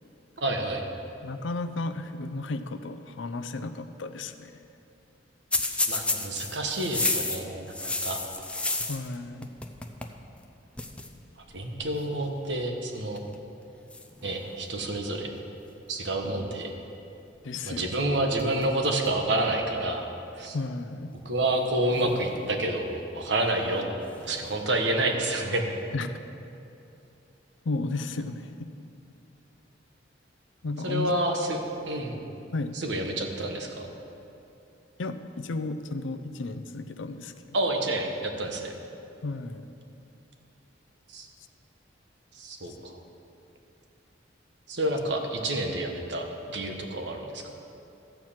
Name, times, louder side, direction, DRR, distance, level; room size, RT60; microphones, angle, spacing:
voice 1, 0.4-0.8 5.9-8.2 11.5-13.2 14.2-15.3 15.9-16.7 17.6-20.1 20.4-20.6 21.2-23.8 24.2-25.6 30.8-31.6 31.9-32.2 32.7-33.9 37.5-38.7 41.1-41.3 42.3-43.0 44.7-46.3 46.5-47.4, right 1 dB, 65° right, 3 dB, 1.2 m, -29 dB
voice 2, 1.2-4.6 8.9-9.5 16.4-16.6 17.4-17.9 20.5-21.1 25.9-26.2 27.6-28.7 30.6-31.2 32.5-32.8 35.0-37.6 39.2-39.7 42.7-42.8, left 3 dB, 85° left, 10 dB, 0.6 m, -33 dB
sound 1, 5.5-9.2 9.4-10.2 10.4-10.5 10.8-11.1 12.0-12.2 13.0-13.4 13.9-15.0 17.9-18.1 18.4-19.2 19.6-19.7 20.7-20.8 21.9-22.8 24.0-24.6, left 2 dB, 5° left, 0.5 m, -32 dB
13.5 x 4.6 x 7.3 m, 2.8 s
head